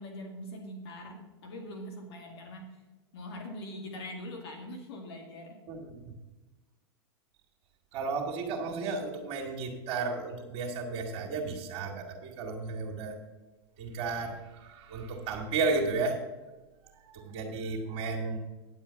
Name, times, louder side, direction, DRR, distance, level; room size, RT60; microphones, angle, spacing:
voice 1, 0.0-2.8 3.1-5.6, left 1 dB, 70° left, 2 dB, 2.1 m, -42 dB
voice 2, 5.7-6.1 7.9-13.2 13.8-16.2 17.0-18.4, right 4 dB, 50° right, -1 dB, 1.8 m, -33 dB
10.5 x 7.3 x 5.7 m, 1.2 s
hypercardioid pair, 100°, 14 cm